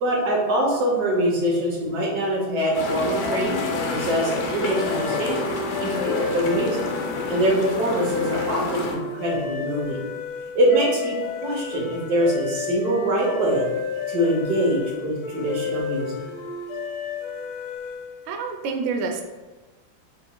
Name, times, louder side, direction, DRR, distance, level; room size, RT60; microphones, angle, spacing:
voice 1, 0.0-5.5 5.8-6.9 7.3-10.0 10.5-13.7 14.1-16.2, right 1 dB, 60° right, -2 dB, 1.3 m, -24 dB
sound 1, 2.7-9.0, left 2 dB, 65° left, 1.2 m, -29 dB
sound 2, 3.2-18.2, left 6 dB, 90° left, 1.6 m, -32 dB
voice 2, 18.3-19.2, right 4 dB, 75° right, 4 dB, 1.3 m, -27 dB
4.7 x 3.7 x 2.2 m, 1.2 s
omnidirectional pair, 2.2 m